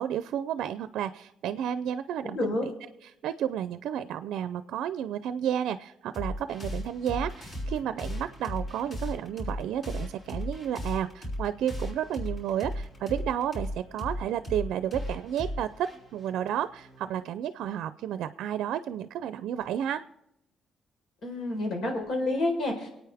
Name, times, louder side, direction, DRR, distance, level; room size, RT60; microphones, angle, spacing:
voice 1, 0.0-2.7 3.0-20.0, right 10 dB, 85° right, 13 dB, 0.5 m, -32 dB
voice 2, 2.2-2.7 21.2-22.9, left 2 dB, 70° left, 2 dB, 4.3 m, -29 dB
sound 1, 6.1-17.2, equal, 35° left, 5.5 m, -36 dB
24.0 x 9.0 x 3.5 m, 0.83 s
cardioid pair, 90°, 0 cm